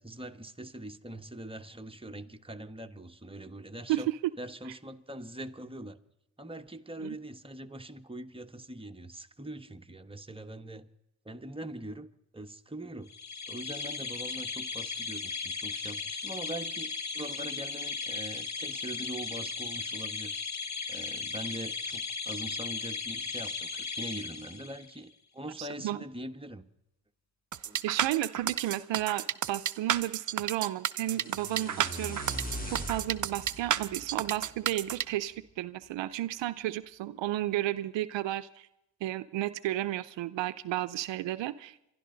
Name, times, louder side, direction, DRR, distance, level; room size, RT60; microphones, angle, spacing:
voice 1, 0.0-4.1 4.4-6.0 6.4-10.9 11.2-12.1 12.3-13.1 13.5-20.4 20.9-26.6 27.6-28.1 36.5-36.6, right 1 dB, 10° right, 1.3 m, -42 dB
sound 1, 13.1-24.9, left 5 dB, 40° left, 1.5 m, -36 dB
voice 2, 25.6-26.0 27.8-32.4 32.7-38.7 39.0-41.8, right 14 dB, 85° right, 0.6 m, -33 dB
sound 2, 27.5-35.0, right 9 dB, 45° right, 0.6 m, -31 dB
sound 3, 31.0-35.1, equal, 20° left, 3.5 m, -41 dB
27.5 x 12.0 x 3.9 m
supercardioid pair, 45°, 44 cm